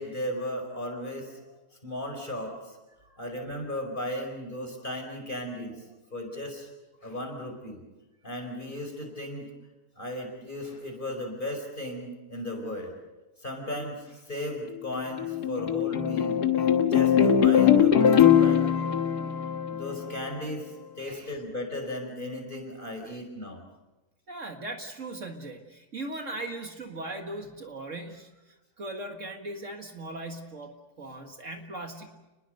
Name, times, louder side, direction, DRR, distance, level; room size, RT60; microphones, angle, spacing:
voice 1, 0.0-1.4 1.8-2.8 3.2-5.8 6.1-6.7 7.0-7.8 8.2-9.5 10.0-12.9 13.4-16.4 16.8-18.8 19.8-23.6, left 1 dB, 30° left, 2 dB, 5.4 m, -35 dB
sound 1, 14.7-20.3, left 9 dB, 90° left, 1.9 m, -22 dB
voice 2, 21.0-21.3 23.0-23.2 24.3-32.2, right 2 dB, 55° right, 4 dB, 2.1 m, -39 dB
30.0 x 20.5 x 6.7 m, 1.1 s
omnidirectional pair, 1.6 m